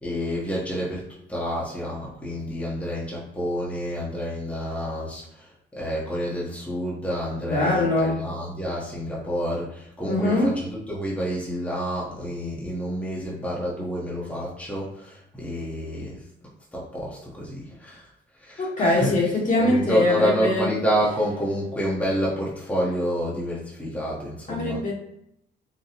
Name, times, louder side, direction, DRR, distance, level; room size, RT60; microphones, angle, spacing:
voice 1, 0.0-16.2 16.7-18.0 18.4-19.2 19.6-24.8, equal, 5° left, -5 dB, 0.9 m, -29 dB
voice 2, 7.4-8.2 10.0-10.5 18.6-20.7 24.5-24.9, left 2 dB, 40° left, -3 dB, 1.3 m, -22 dB
4.0 x 2.3 x 2.8 m, 0.75 s
cardioid pair, 90°, 20 cm